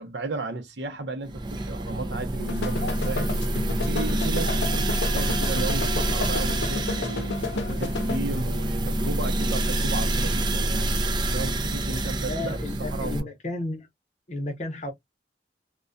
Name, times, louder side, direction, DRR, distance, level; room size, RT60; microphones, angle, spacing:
voice 1, 0.0-3.3 3.8-7.4 7.7-10.9 11.3-12.6 12.9-13.3, right 3 dB, 75° right, 0.6 m, -34 dB
sound 1, 1.3-13.2, right 1 dB, 25° right, 0.4 m, -27 dB
sound 2, 2.4-8.2, left 3 dB, 85° left, 0.5 m, -32 dB
voice 2, 12.3-13.9 14.3-14.9, left 2 dB, 40° left, 0.7 m, -32 dB
2.2 x 2.2 x 2.5 m
head